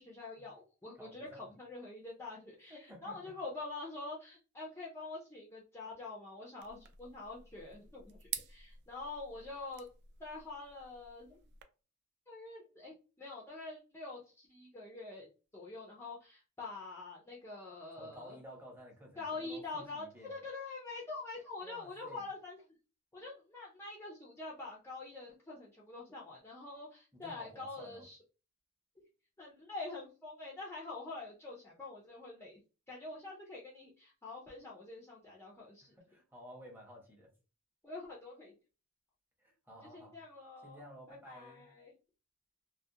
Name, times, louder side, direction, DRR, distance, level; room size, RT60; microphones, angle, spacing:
voice 1, 0.0-9.9 10.2-11.4 12.3-15.3 15.5-18.4 19.2-22.6 23.1-28.2 29.4-32.6 32.9-35.9 37.8-38.5 39.9-40.8 41.1-41.9, left 3 dB, 10° left, 0.4 m, -46 dB
voice 2, 0.9-1.5 2.7-3.3 18.0-20.3 21.6-22.3 27.1-28.0 35.8-37.3 39.4-40.2 40.6-41.7, equal, 10° right, 0.8 m, -53 dB
sound 1, 6.6-11.6, right 9 dB, 55° right, 0.3 m, -49 dB
2.3 x 2.1 x 2.7 m
head